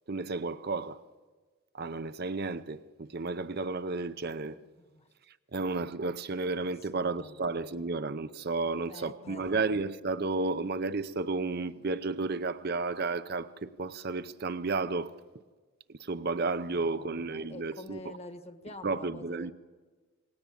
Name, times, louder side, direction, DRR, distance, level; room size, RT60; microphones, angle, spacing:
voice 1, 0.1-1.0 1.7-4.6 5.5-15.1 15.9-18.1 18.8-19.5, right 3 dB, 45° right, 0.7 m, -32 dB
voice 2, 4.4-5.1 6.6-7.4 7.6-7.7 8.6-9.6 16.6-19.5, left 1 dB, 30° left, 1.6 m, -48 dB
28.5 x 19.5 x 8.6 m
head